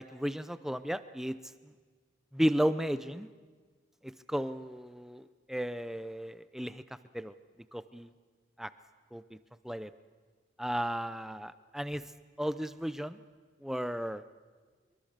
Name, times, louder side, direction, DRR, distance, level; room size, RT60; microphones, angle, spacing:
voice 1, 0.0-1.4 2.3-3.3 4.0-6.8 7.1-7.3 7.7-8.1 8.6-8.7 9.1-9.2 9.6-9.9 10.6-12.0 12.4-13.2 13.6-14.2, equal, ahead, 13 dB, 0.6 m, -34 dB
24.0 x 23.0 x 6.7 m, 1.5 s
head